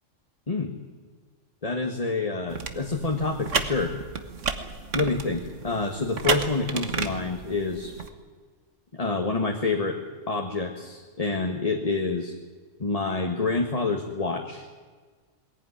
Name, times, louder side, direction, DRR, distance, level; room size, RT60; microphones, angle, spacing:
voice 1, 1.6-3.9 4.9-7.9 8.9-12.3 12.8-14.7, left 3 dB, 30° left, 3 dB, 1.6 m, -27 dB
sound 1, 2.5-8.1, right 5 dB, 70° right, 1.8 m, -32 dB
21.5 x 17.0 x 9.8 m, 1.5 s
omnidirectional pair, 1.3 m